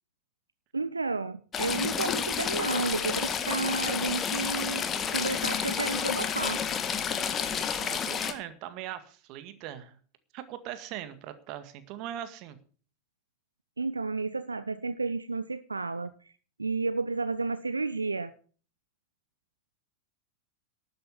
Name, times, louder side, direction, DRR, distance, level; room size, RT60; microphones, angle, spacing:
voice 1, 0.7-6.6 13.8-16.1 16.6-18.3, right 3 dB, 80° right, 0.6 m, -31 dB
Stream / Trickle dribble, 1.5-8.3, left 7 dB, 25° left, 1.6 m, -30 dB
voice 2, 7.4-10.0 10.3-12.6, right 11 dB, 40° right, 1.9 m, -40 dB
12.5 x 8.9 x 7.2 m
figure-of-eight pair, 90°, 0 cm